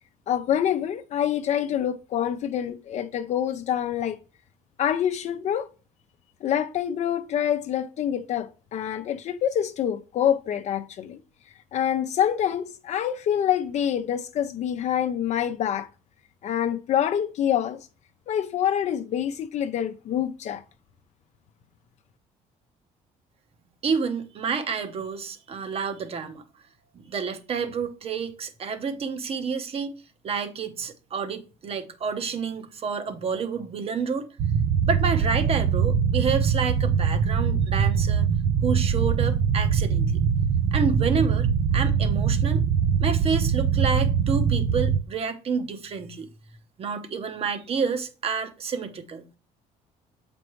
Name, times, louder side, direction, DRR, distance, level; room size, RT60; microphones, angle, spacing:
voice 1, 0.3-4.2 4.8-5.7 6.4-11.2 11.7-15.9 16.4-17.8 18.3-20.6, left 9 dB, 55° left, 0.6 m, -26 dB
voice 2, 23.8-26.4 26.9-29.9 30.2-34.3 34.9-38.3 38.6-40.1 40.7-41.5 41.7-42.6 43.0-46.3 46.8-49.3, right 5 dB, 45° right, 1.0 m, -29 dB
sound 1, 34.4-45.0, right 7 dB, 65° right, 0.6 m, -22 dB
7.5 x 5.2 x 3.1 m
cardioid pair, 120°, 14 cm